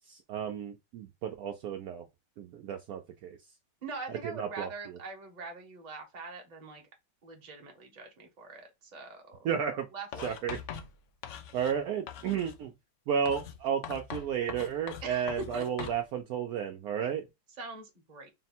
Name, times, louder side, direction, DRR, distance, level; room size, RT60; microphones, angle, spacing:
voice 1, 0.1-2.0 2.4-3.4 4.2-4.7 9.4-9.9 10.2-10.6 11.5-12.7 13.1-17.3, right 8 dB, 70° right, 1.0 m, -32 dB
voice 2, 3.8-6.8 7.2-9.5 9.9-10.3 15.0-15.3 15.5-15.6 17.6-18.3, right 4 dB, 30° right, 0.9 m, -43 dB
Writing, 10.1-11.8 12.1-12.6 13.3-16.0, left 8 dB, 70° left, 0.7 m, -42 dB
4.0 x 2.2 x 4.2 m
omnidirectional pair, 1.9 m